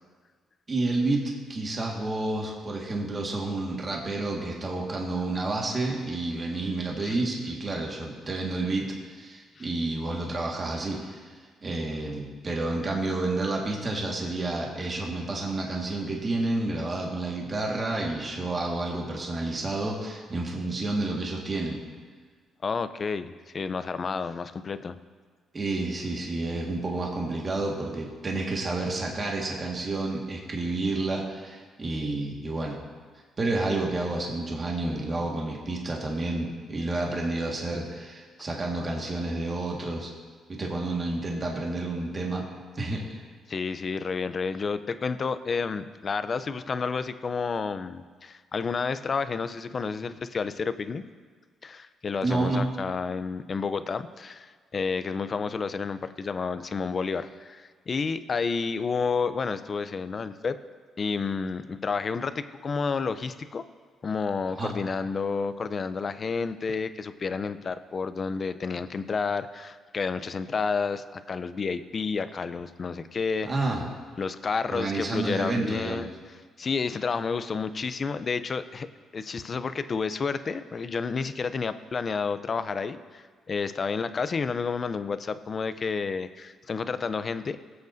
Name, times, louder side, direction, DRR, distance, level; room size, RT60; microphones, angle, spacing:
voice 1, 0.7-21.8 25.5-32.8 33.4-40.1 40.5-42.5 42.7-43.2 52.2-52.7 64.6-64.7 73.5-73.8 74.7-76.1, right 2 dB, 35° right, -1 dB, 1.7 m, -30 dB
voice 2, 22.6-25.0 43.5-51.0 51.6-60.6 61.0-63.6 64.0-73.5 74.2-76.1 76.6-78.9 79.1-87.6, left 5 dB, 40° left, 12 dB, 0.5 m, -30 dB
20.0 x 8.0 x 2.7 m, 1.5 s
cardioid pair, 90°, 0 cm